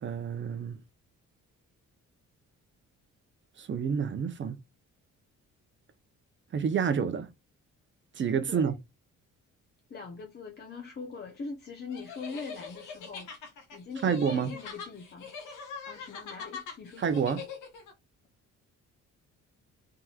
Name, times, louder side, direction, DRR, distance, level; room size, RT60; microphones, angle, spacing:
voice 1, 0.0-0.8 3.6-4.6 6.5-7.3 8.1-8.7 14.0-14.5 17.0-17.4, right 7 dB, 40° right, 0.6 m, -28 dB
voice 2, 9.9-13.3 13.7-15.3 15.9-17.2, left 4 dB, 35° left, 0.7 m, -42 dB
sound 1, 11.9-17.9, left 5 dB, 90° left, 1.1 m, -42 dB
3.5 x 2.9 x 2.3 m
cardioid pair, 90°, 30 cm